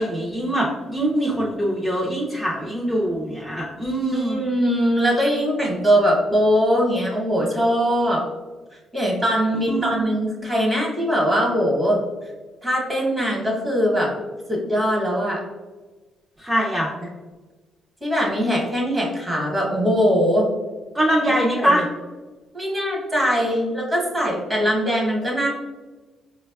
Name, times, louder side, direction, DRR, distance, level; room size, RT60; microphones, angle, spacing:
voice 1, 0.0-4.4 9.7-10.0 16.4-16.9 20.9-21.8, right 1 dB, 5° right, -5 dB, 0.6 m, -23 dB
voice 2, 4.1-8.2 8.9-12.0 12.6-14.1 14.5-15.4 18.0-20.5 21.6-21.8 22.5-25.5, equal, 25° right, -2 dB, 1.2 m, -21 dB
4.9 x 2.2 x 2.3 m, 1.3 s
cardioid pair, 90°, 0 cm